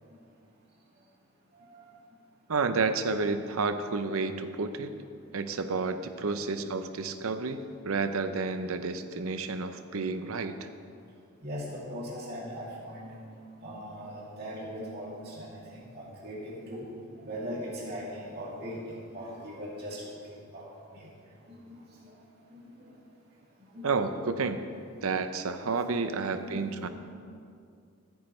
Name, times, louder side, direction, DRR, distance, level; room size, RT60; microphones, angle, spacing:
voice 1, 2.5-4.9 5.3-10.7 23.8-24.6 25.0-26.9, right 4 dB, 75° right, 10 dB, 0.6 m, -30 dB
voice 2, 11.4-13.1 13.6-16.9 17.2-18.8 19.1-20.0 20.5-21.1 21.5-22.1 22.5-22.7 23.7-23.9 26.2-26.9, equal, 45° right, -6 dB, 2.6 m, -40 dB
14.5 x 9.2 x 3.2 m, 2.4 s
head